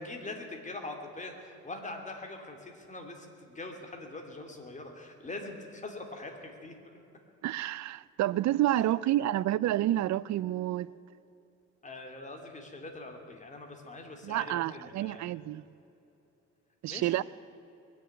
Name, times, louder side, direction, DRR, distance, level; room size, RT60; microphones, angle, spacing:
voice 1, 0.0-6.7 8.7-8.9 11.8-15.3 16.9-17.2, left 2 dB, 25° left, 2.8 m, -43 dB
voice 2, 7.4-10.9 14.2-15.6 16.8-17.2, right 14 dB, 65° right, 0.5 m, -29 dB
21.5 x 7.2 x 9.5 m
cardioid pair, 90°, 30 cm